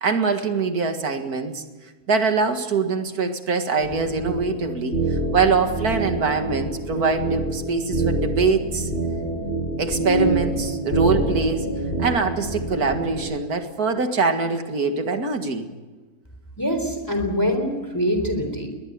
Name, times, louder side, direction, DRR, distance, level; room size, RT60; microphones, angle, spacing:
voice 1, 0.0-1.6 2.1-8.9 9.8-11.7 12.0-15.7, right 4 dB, 90° right, 6 dB, 2.4 m, -23 dB
sound 1, 3.8-13.2, right 2 dB, 40° left, 7.2 m, -26 dB
voice 2, 16.6-18.7, equal, 15° left, 5 dB, 3.8 m, -24 dB
22.0 x 19.5 x 8.7 m, 1.3 s
omnidirectional pair, 1.6 m